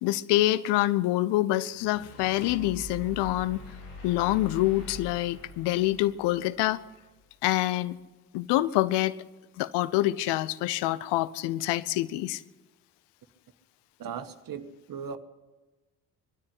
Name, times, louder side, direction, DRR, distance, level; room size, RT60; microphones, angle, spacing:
voice 1, 0.0-3.6 4.0-6.8 7.4-8.0 8.3-9.2 9.6-12.4, left 16 dB, 65° left, 18 dB, 0.9 m, -26 dB
sound 1, 1.7-7.0, left 2 dB, 85° left, 3.1 m, -44 dB
voice 2, 14.0-15.2, right 7 dB, 50° right, 10 dB, 1.8 m, -38 dB
20.5 x 13.0 x 9.9 m, 1.2 s
hypercardioid pair, 45°, 44 cm